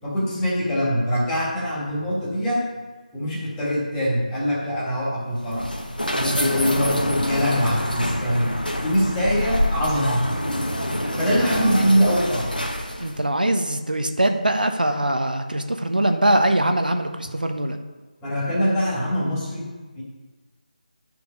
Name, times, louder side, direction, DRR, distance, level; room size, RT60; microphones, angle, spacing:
voice 1, 0.0-2.6 3.1-5.7 6.1-8.6 8.8-10.3 11.2-12.5 18.2-19.7 20.0-20.1, equal, 10° left, -6 dB, 1.8 m, -23 dB
sound 1, 5.3-13.2, left 1 dB, 85° left, 1.2 m, -26 dB
voice 2, 13.0-17.8, right 1 dB, 75° right, 6 dB, 0.8 m, -22 dB
9.4 x 4.6 x 5.1 m, 1.3 s
figure-of-eight pair, 155°, 5 cm